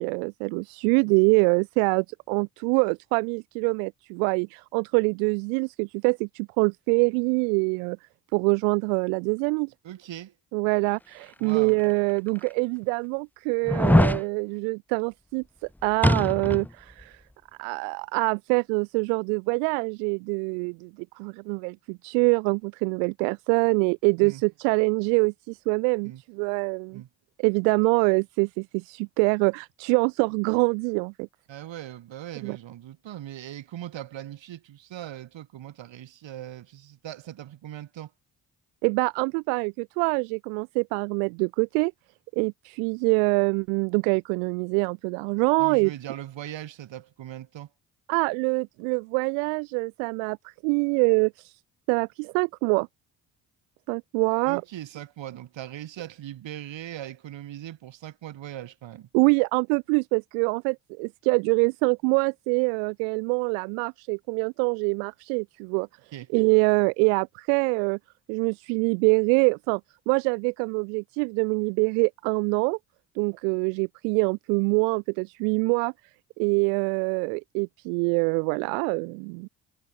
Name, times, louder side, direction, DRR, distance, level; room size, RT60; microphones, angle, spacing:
voice 1, 0.0-8.0 8.3-9.7 10.5-15.4 15.8-17.2 17.6-20.9 21.2-27.0 27.4-31.3 32.4-32.6 38.8-41.9 42.3-45.9 48.1-51.6 51.9-52.9 53.9-54.6 59.1-65.9 66.3-68.0 68.3-69.8 70.1-72.8 73.2-75.9 76.4-79.5, right 40 dB or more, 80° right, 2.0 m, -25 dB
voice 2, 9.8-10.3 11.4-11.8 24.2-24.4 26.0-26.2 26.9-27.1 31.5-38.1 45.6-47.7 54.5-59.1 66.1-66.3, right 12 dB, 65° right, 6.0 m, -40 dB
sound 1, 11.7-11.8 12.5-12.6 13.7-14.2 16.0-16.7 17.0-17.1, left 1 dB, 5° left, 0.6 m, -21 dB
hypercardioid pair, 45°, 48 cm